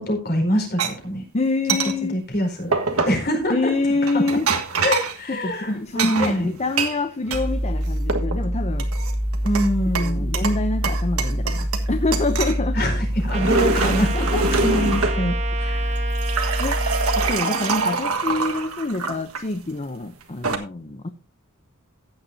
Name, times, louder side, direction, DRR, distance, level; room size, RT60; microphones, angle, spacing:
voice 1, 0.0-1.2 2.1-2.7 3.0-3.7 4.1-4.2 4.8-6.5 9.4-10.3 12.7-16.0, equal, 50° left, 3 dB, 4.6 m, -24 dB
sound 1, 0.8-0.9 1.7-1.9 2.7-3.2 4.0-5.2 6.0-7.4 7.8-8.4 8.8-9.7 9.9-10.6 10.8-11.9 12.1-12.6 13.1-15.2 16.0-19.4 20.2-20.6, right 4 dB, 70° right, 1.6 m, -25 dB
voice 2, 1.3-2.2 3.5-4.5 5.3-8.9 10.0-12.8 16.6-16.8 17.2-21.1, left 3 dB, 30° left, 8 dB, 0.7 m, -26 dB
sound 2, 7.3-17.3, equal, 10° left, 1.4 m, -25 dB
Trumpet, 13.3-18.0, right 2 dB, 30° right, 1.7 m, -32 dB
15.5 x 10.0 x 2.7 m, 0.31 s
head